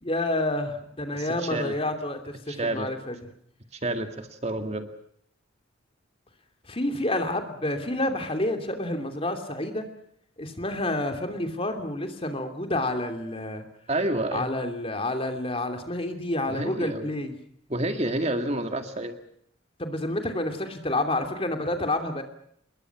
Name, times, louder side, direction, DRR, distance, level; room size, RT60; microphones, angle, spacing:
voice 1, 0.0-3.2 6.7-9.9 10.4-13.7 14.3-17.3 19.8-22.2, left 1 dB, 30° left, 6 dB, 2.9 m, -29 dB
voice 2, 1.1-1.7 2.5-2.9 3.7-4.9 13.9-14.5 16.5-17.1 17.7-19.2, right 1 dB, 35° right, 7 dB, 2.1 m, -29 dB
28.0 x 21.5 x 6.1 m, 0.70 s
head